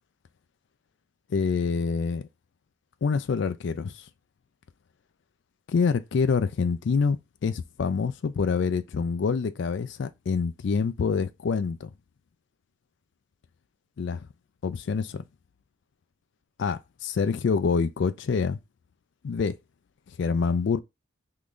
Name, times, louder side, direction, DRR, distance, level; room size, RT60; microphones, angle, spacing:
voice 1, 1.3-2.2 3.0-4.0 5.7-7.2 7.4-11.9 14.0-14.3 14.6-15.2 16.6-18.6 19.2-19.6 20.2-20.8, left 5 dB, 60° left, 0.3 m, -26 dB
3.7 x 2.5 x 3.1 m
head